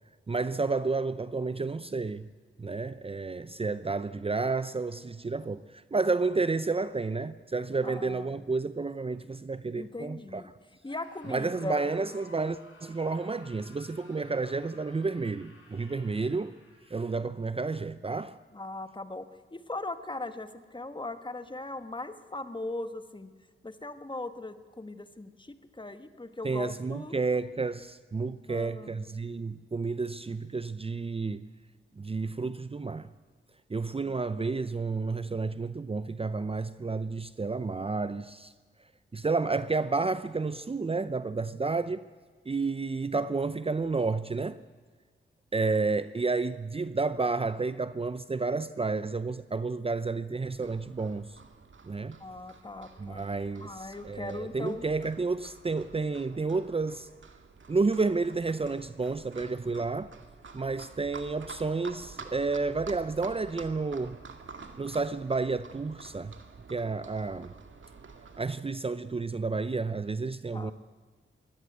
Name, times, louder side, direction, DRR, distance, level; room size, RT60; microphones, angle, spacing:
voice 1, 0.3-2.3 2.6-10.4 11.3-16.6 16.9-18.4 26.4-31.5 32.0-33.1 33.7-38.5 39.1-42.1 42.5-44.6 45.5-51.4 51.8-52.2 53.0-57.1 57.7-60.1 60.5-64.2 64.8-66.3 66.7-67.5 68.4-70.7, right 3 dB, 25° right, 0.6 m, -31 dB
voice 2, 7.8-8.3 9.7-10.5 10.8-11.9 18.5-23.3 23.6-27.2 28.5-29.2 34.0-34.2 52.2-53.2 53.6-54.8 70.5-70.7, left 2 dB, 20° left, 1.5 m, -39 dB
Screaming, 10.8-17.3, left 2 dB, 80° left, 6.4 m, -56 dB
Livestock farm animals working animals, 50.4-68.5, right 4 dB, 65° right, 2.0 m, -49 dB
22.5 x 17.5 x 8.1 m
cardioid pair, 75°, 21 cm